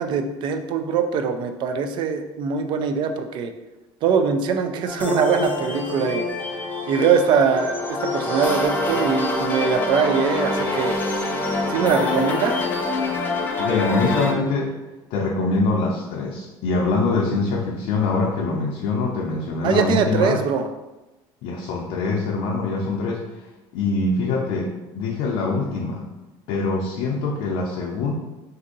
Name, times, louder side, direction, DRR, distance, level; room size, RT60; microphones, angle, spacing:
voice 1, 0.0-3.5 4.0-6.5 6.9-11.0 11.7-12.6 19.6-20.7, right 6 dB, 50° right, 7 dB, 0.4 m, -22 dB
sound 1, 4.9-14.3, left 2 dB, 20° left, 0.5 m, -25 dB
voice 2, 13.6-14.7 15.1-20.4 21.4-23.2 23.7-24.7 24.9-26.0 26.5-28.1, left 3 dB, 70° left, -2 dB, 0.5 m, -24 dB
2.7 x 2.5 x 3.8 m, 1.0 s
cardioid pair, 135°, 10 cm